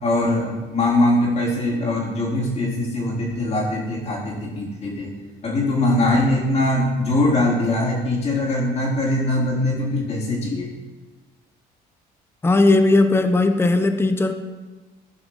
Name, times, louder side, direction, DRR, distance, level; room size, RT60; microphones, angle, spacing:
voice 1, 0.0-5.1 5.4-10.7, left 1 dB, 40° left, -4 dB, 3.5 m, -22 dB
voice 2, 12.4-14.3, left 2 dB, 15° left, 8 dB, 0.7 m, -17 dB
15.5 x 5.7 x 4.0 m, 1.3 s
cardioid pair, 110°, 17 cm